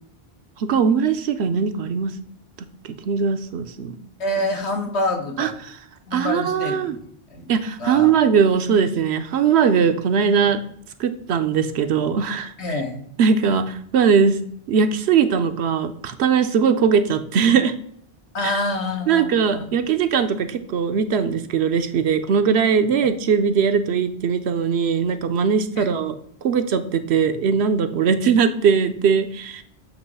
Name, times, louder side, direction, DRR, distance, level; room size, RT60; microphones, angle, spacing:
voice 1, 0.6-2.1 3.0-4.0 5.4-5.5 6.1-7.0 7.5-10.6 11.0-12.5 13.2-14.4 14.7-17.7 18.4-18.5 19.1-26.2 26.4-29.6, right 6 dB, 75° right, 9 dB, 0.9 m, -20 dB
voice 2, 4.2-5.5 6.1-6.9 7.3-7.5 7.8-8.2 10.4-10.5 12.6-13.0 18.3-19.2 19.5-19.7 25.8-25.9, left 1 dB, 80° left, 3 dB, 1.5 m, -26 dB
8.0 x 3.0 x 5.4 m, 0.65 s
omnidirectional pair, 1.1 m